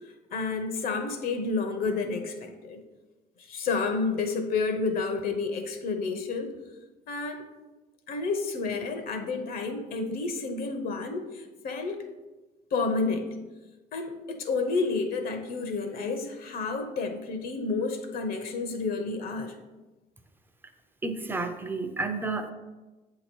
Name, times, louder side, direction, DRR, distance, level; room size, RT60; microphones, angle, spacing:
voice 1, 0.3-2.8 3.5-6.5 7.1-7.4 8.1-12.0 12.7-13.3 13.9-19.5, left 4 dB, 60° left, 5 dB, 0.7 m, -30 dB
voice 2, 21.0-22.5, right 3 dB, 10° right, 6 dB, 0.5 m, -31 dB
7.3 x 2.9 x 4.4 m, 1.2 s
cardioid pair, 110°, 17 cm